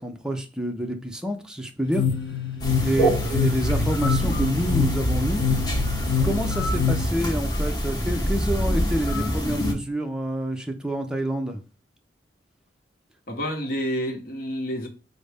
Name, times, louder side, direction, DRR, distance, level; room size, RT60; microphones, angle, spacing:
voice 1, 0.0-2.1 2.8-5.5 6.2-11.6, right 1 dB, 5° right, 0.5 m, -28 dB
sound 1, 1.8-7.1, left 7 dB, 80° left, 0.8 m, -26 dB
sound 2, 2.6-9.7, equal, 20° left, 1.0 m, -25 dB
voice 2, 2.9-3.2 13.3-14.9, equal, 50° left, 1.0 m, -29 dB
5.2 x 2.1 x 3.4 m
head